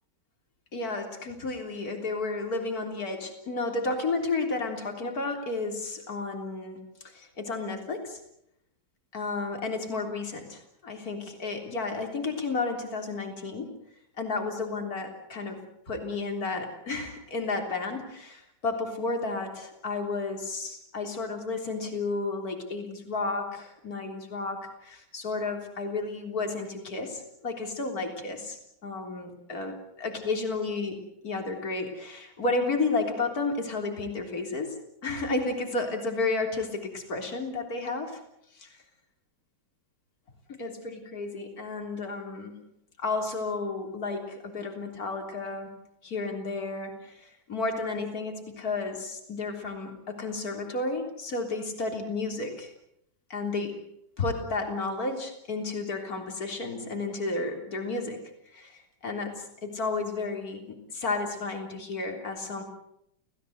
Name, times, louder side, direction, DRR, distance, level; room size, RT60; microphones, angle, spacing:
voice 1, 0.7-8.2 9.1-13.7 14.2-15.6 15.9-29.7 30.0-31.0 31.2-38.2 38.5-38.8 40.5-42.7 43.0-45.7 46.0-52.7 53.3-53.8 54.2-58.2 58.5-62.6, left 3 dB, 55° left, 4 dB, 4.0 m, -32 dB
29.0 x 17.0 x 8.0 m, 0.78 s
omnidirectional pair, 1.9 m